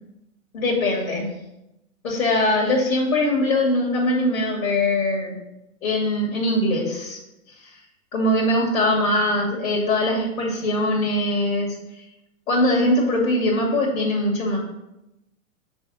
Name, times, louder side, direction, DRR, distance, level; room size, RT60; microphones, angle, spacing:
voice 1, 0.5-1.3 2.0-5.4 5.8-7.2 7.6-7.7 8.1-12.1 12.5-14.6, left 1 dB, 80° left, -3 dB, 2.3 m, -22 dB
6.3 x 3.5 x 6.0 m, 0.90 s
hypercardioid pair, 140°, 41 cm